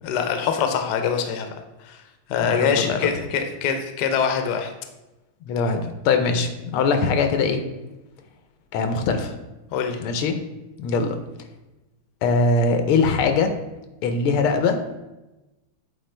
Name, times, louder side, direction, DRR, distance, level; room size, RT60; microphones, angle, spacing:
voice 1, 0.0-2.0 2.3-4.7 9.7-10.0, left 7 dB, 65° left, 6 dB, 1.1 m, -24 dB
voice 2, 2.4-3.1 5.4-7.6 8.7-9.3 10.0-10.4 10.8-11.2 12.2-13.5 14.0-15.0, left 4 dB, 90° left, 7 dB, 1.6 m, -22 dB
7.9 x 4.3 x 3.3 m, 1.0 s
omnidirectional pair, 2.3 m